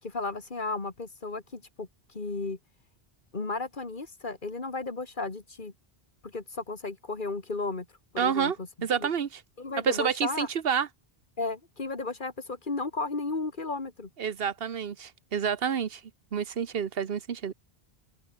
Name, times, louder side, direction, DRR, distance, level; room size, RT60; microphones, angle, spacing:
voice 1, 0.0-2.6 3.3-5.7 6.2-8.7 9.0-9.1 9.6-10.5 11.4-14.1, left 3 dB, 50° left, 2.4 m, -34 dB
voice 2, 8.2-8.6 8.8-9.4 9.8-10.9 14.2-16.0 16.3-17.5, right 7 dB, 70° right, 1.2 m, -28 dB
omnidirectional pair, 1.0 m